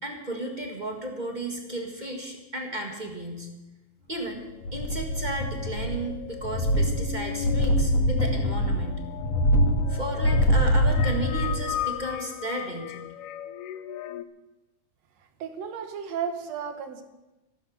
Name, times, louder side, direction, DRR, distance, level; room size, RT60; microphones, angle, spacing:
voice 1, 0.0-3.5 4.1-4.4 4.7-9.0 9.9-13.0, right 1 dB, 20° right, 3 dB, 1.3 m, -34 dB
sound 1, 4.6-14.2, left 12 dB, 80° left, 1.3 m, -37 dB
sound 2, 4.6-6.1 6.4-11.7 12.0-12.1, equal, 60° left, 2.9 m, -24 dB
voice 2, 15.2-17.0, right 7 dB, 65° right, 8 dB, 2.4 m, -34 dB
14.5 x 12.0 x 6.5 m, 1.0 s
omnidirectional pair, 3.3 m